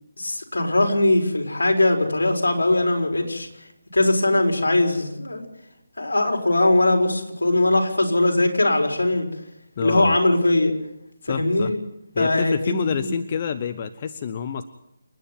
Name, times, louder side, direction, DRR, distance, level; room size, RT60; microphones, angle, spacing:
voice 1, 0.2-3.5 3.9-5.4 6.0-9.3 9.8-10.7 11.3-11.8 12.2-13.1, left 2 dB, 80° left, 3 dB, 4.6 m, -20 dB
voice 2, 9.8-10.2 11.3-11.7 12.1-14.6, left 7 dB, 35° left, 11 dB, 0.9 m, -28 dB
29.0 x 9.9 x 9.2 m, 0.85 s
figure-of-eight pair, 155°, 0 cm